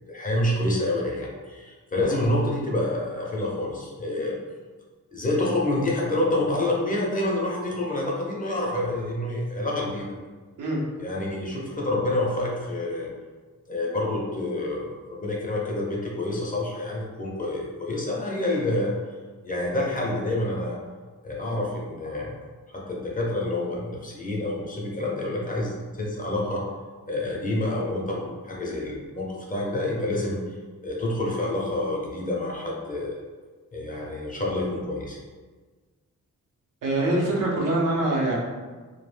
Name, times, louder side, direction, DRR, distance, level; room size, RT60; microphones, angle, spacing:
voice 1, 0.1-4.4 5.1-10.2 11.0-13.1 13.7-18.9 19.4-20.8 21.2-22.4 22.7-26.6 27.1-30.4 30.8-33.2 33.7-35.2, left 1 dB, 25° left, -3 dB, 0.5 m, -28 dB
voice 2, 36.8-38.4, right 2 dB, 80° right, -4 dB, 0.7 m, -24 dB
2.2 x 2.1 x 3.2 m, 1.4 s
wide cardioid pair, 110°, 31 cm